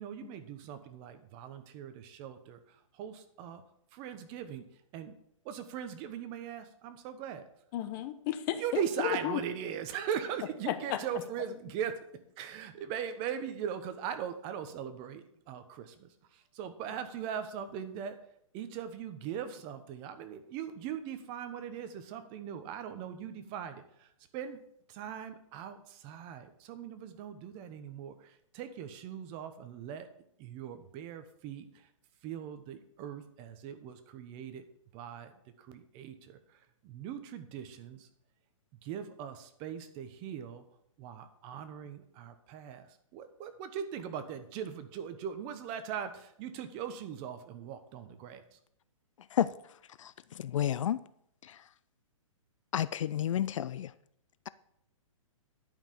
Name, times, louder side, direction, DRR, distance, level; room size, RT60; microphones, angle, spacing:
voice 1, 0.0-3.6 3.9-5.2 5.4-7.5 8.5-12.0 12.4-18.2 18.5-24.6 24.9-30.1 30.4-31.9 32.2-34.7 34.9-38.1 38.8-40.6 41.0-48.6, right 8 dB, 30° right, 1.0 m, -40 dB
voice 2, 7.7-8.8 9.2-9.4 10.9-11.0, left 12 dB, 35° left, 1.0 m, -33 dB
voice 3, 50.0-51.0 51.4-51.6 52.7-53.9, left 10 dB, 65° left, 0.4 m, -31 dB
10.5 x 5.7 x 6.7 m
hypercardioid pair, 140°, 17 cm